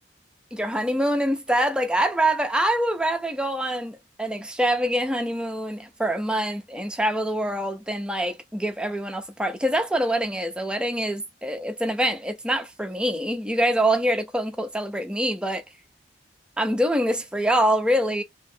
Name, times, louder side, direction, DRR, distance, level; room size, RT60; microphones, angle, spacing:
voice 1, 0.5-15.6 16.6-18.2, right 1 dB, 5° right, 0.5 m, -25 dB
2.9 x 2.8 x 2.6 m
head